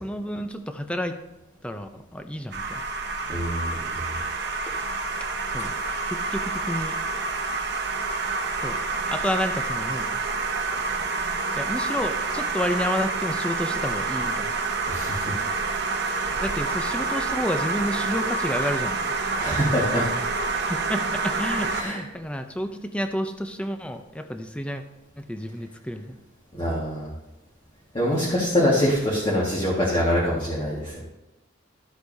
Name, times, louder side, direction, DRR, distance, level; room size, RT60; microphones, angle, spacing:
voice 1, 0.0-1.2 1.6-2.8 5.5-5.7 6.1-7.0 8.6-8.8 9.1-10.2 11.6-14.5 16.4-19.0 20.7-24.8 25.2-26.2, equal, 5° left, 7 dB, 0.5 m, -30 dB
sound 1, 2.5-21.8, right 3 dB, 55° right, 0.9 m, -28 dB
voice 2, 3.3-4.1 14.9-15.3 19.4-20.1 21.6-22.0 26.6-27.1 27.9-31.0, equal, 25° left, -6 dB, 1.7 m, -24 dB
12.5 x 8.1 x 2.7 m, 0.97 s
head